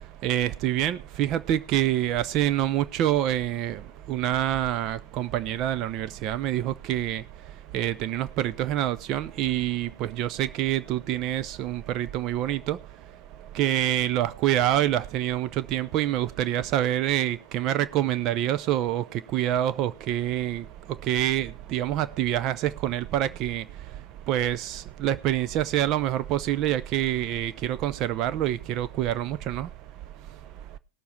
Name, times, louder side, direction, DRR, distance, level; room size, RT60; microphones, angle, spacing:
voice 1, 0.2-3.8 4.1-7.2 7.7-12.8 13.5-19.0 19.3-20.6 21.1-23.6 24.3-29.7, right 12 dB, 35° right, 0.6 m, -26 dB
18.5 x 7.1 x 4.3 m
figure-of-eight pair, 90°, 0 cm